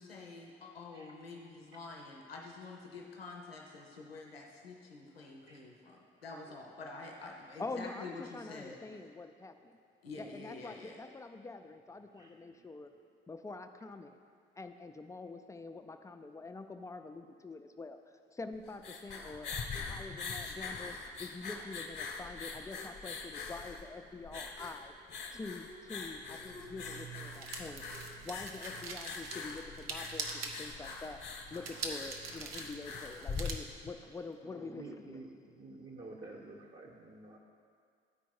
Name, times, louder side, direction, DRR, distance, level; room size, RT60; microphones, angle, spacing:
voice 1, 0.0-8.8 10.0-11.0, left 3 dB, 90° left, 0 dB, 0.5 m, -48 dB
voice 2, 7.6-9.8 10.2-12.9 13.3-14.2 14.6-24.9 25.3-27.8 28.2-31.2 31.5-35.2, left 3 dB, 10° left, 7 dB, 0.4 m, -46 dB
voice 3, 12.2-12.7 34.5-37.4, right 3 dB, 30° right, 0 dB, 0.9 m, -50 dB
sound 1, 18.5-34.0, left 4 dB, 35° left, 1.0 m, -43 dB
sound 2, 26.0-33.5, right 4 dB, 85° right, 0.6 m, -44 dB
9.5 x 4.5 x 4.4 m, 2.2 s
figure-of-eight pair, 45°, 29 cm